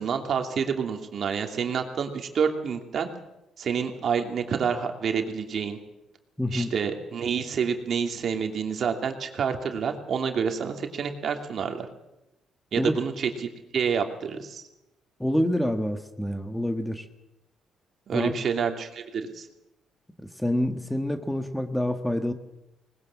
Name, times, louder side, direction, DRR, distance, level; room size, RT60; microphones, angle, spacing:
voice 1, 0.0-3.1 3.6-5.8 6.5-11.9 12.7-14.6 18.1-19.5, right 6 dB, 55° right, 4 dB, 2.8 m, -28 dB
voice 2, 6.4-6.7 12.8-12.9 15.2-17.1 18.1-18.3 20.2-22.3, left 1 dB, 5° left, 8 dB, 1.6 m, -27 dB
20.5 x 20.0 x 7.3 m, 0.91 s
cardioid pair, 95°, 0 cm